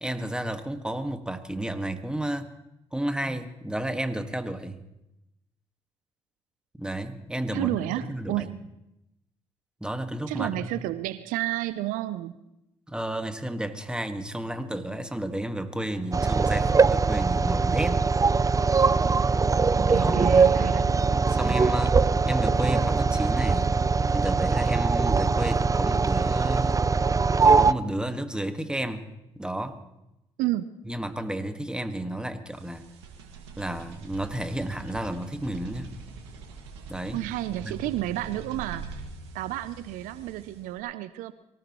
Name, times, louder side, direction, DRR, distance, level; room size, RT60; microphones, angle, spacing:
voice 1, 0.0-2.5 2.9-4.8 6.8-8.5 9.8-10.7 12.9-18.0 19.9-20.4 21.3-23.7 24.1-26.8 27.4-29.1 29.3-29.8 30.9-32.8 33.6-36.0 36.9-37.2 37.6-37.7, right 1 dB, 5° right, 8 dB, 1.7 m, -32 dB
voice 2, 7.5-8.6 10.3-12.3 19.9-21.0 30.4-30.7 37.1-38.9 39.3-41.3, right 15 dB, 70° right, 15 dB, 0.6 m, -31 dB
sound 1, 16.1-27.7, right 4 dB, 25° right, 0.6 m, -22 dB
sound 2, 32.5-40.8, right 4 dB, 90° right, 2.0 m, -43 dB
24.0 x 18.0 x 3.1 m, 0.88 s
hypercardioid pair, 50°, 14 cm